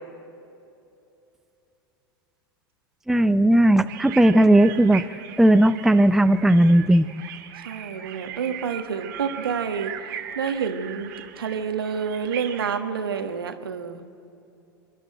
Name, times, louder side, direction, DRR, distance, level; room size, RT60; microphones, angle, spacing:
voice 1, 3.1-5.0 5.4-7.1, right 1 dB, 5° right, 11 dB, 0.6 m, -16 dB
sound 1, 3.9-12.8, right 9 dB, 60° right, 1.9 m, -39 dB
voice 2, 7.6-9.9 10.3-14.0, right 6 dB, 80° right, 7 dB, 1.5 m, -28 dB
27.0 x 11.5 x 8.8 m, 2.7 s
figure-of-eight pair, 85°, 12 cm